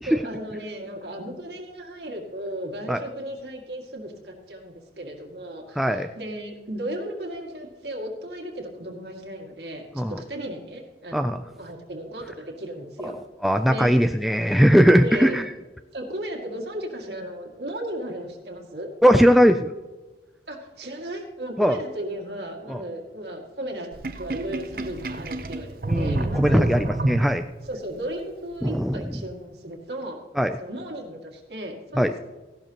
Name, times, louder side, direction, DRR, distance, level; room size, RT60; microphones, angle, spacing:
voice 1, 0.1-11.2 11.6-13.1 13.7-13.9 15.0-15.4 15.9-18.9 20.5-23.9 24.2-26.9 27.6-30.2 30.6-32.2, right 1 dB, 75° right, 1 dB, 2.2 m, -35 dB
voice 2, 5.8-6.1 10.0-10.1 11.1-11.4 13.0-13.1 13.4-15.5 19.0-19.7 21.6-21.8 22.7-22.8 25.9-27.4 28.6-29.0 30.4-30.6 32.0-32.1, equal, ahead, 7 dB, 0.3 m, -19 dB
Sink (filling or washing), 23.9-27.7, right 2 dB, 55° right, 0.8 m, -28 dB
16.0 x 12.0 x 2.9 m, 1.2 s
head